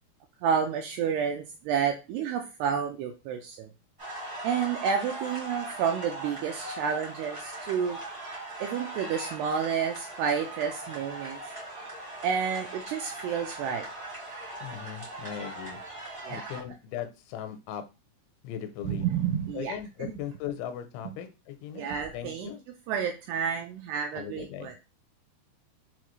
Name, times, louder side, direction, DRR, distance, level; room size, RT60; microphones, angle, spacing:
voice 1, 0.4-3.7 4.4-8.0 8.6-11.4 12.2-13.9 16.2-16.5 18.8-20.1 21.7-22.5 22.9-24.7, right 7 dB, 85° right, 4 dB, 2.3 m, -30 dB
sound 1, 4.0-16.6, right 2 dB, 45° right, 0.3 m, -40 dB
voice 2, 14.6-15.8 16.3-17.8 18.4-19.1 19.5-22.6 24.1-24.7, left 9 dB, 85° left, 8 dB, 3.0 m, -38 dB
7.0 x 2.4 x 3.0 m, 0.28 s
omnidirectional pair, 5.2 m